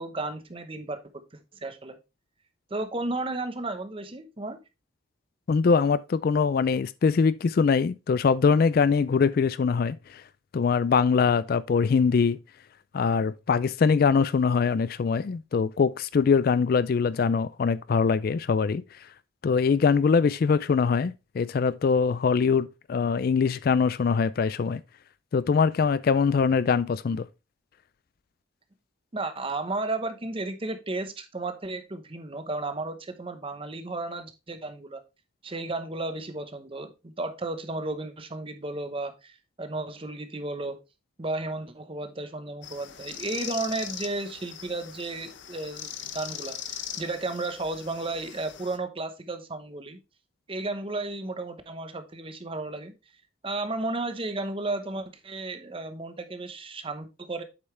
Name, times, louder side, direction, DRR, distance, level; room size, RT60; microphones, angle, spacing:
voice 1, 0.0-2.0 2.7-4.6 29.1-35.0 35.4-40.8 41.2-50.0 50.5-52.9 53.4-57.4, right 2 dB, 25° right, 0.9 m, -33 dB
voice 2, 5.5-10.2 10.5-12.4 12.9-19.0 19.4-24.8 25.3-27.3, left 5 dB, 50° left, 0.3 m, -23 dB
sound 1, 42.6-48.8, left 9 dB, 65° left, 0.8 m, -40 dB
8.1 x 5.5 x 3.2 m
head